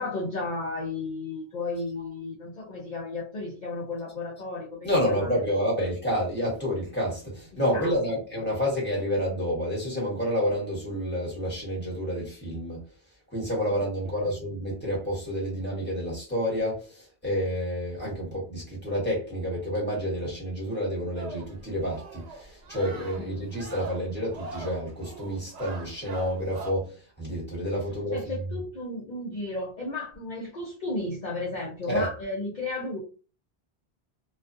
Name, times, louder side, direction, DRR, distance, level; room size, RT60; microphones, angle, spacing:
voice 1, 0.0-5.3 5.8-5.9 7.5-7.9 13.7-14.2 23.1-23.4 28.1-33.0, left 2 dB, 50° left, 0.7 m, -34 dB
voice 2, 4.8-12.8 13.3-28.2 31.9-32.1, equal, 10° left, 1.2 m, -29 dB
sound 1, 21.2-26.7, right 3 dB, 80° right, 0.9 m, -42 dB
2.3 x 2.3 x 2.5 m
omnidirectional pair, 1.1 m